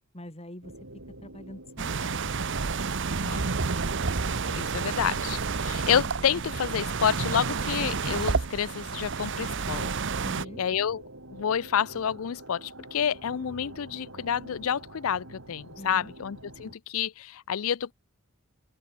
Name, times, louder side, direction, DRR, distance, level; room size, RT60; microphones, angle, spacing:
voice 1, 0.1-0.9 1.2-2.3 10.2-10.6 15.8-16.1, left 1 dB, 30° left, 6.5 m, -44 dB
sound 1, 0.6-16.8, right 1 dB, 80° right, 6.7 m, -47 dB
sound 2, 1.8-10.4, right 4 dB, 60° right, 1.0 m, -30 dB
voice 2, 4.5-9.9 10.6-11.0 11.3-17.9, left 8 dB, 85° left, 0.5 m, -29 dB
open air
head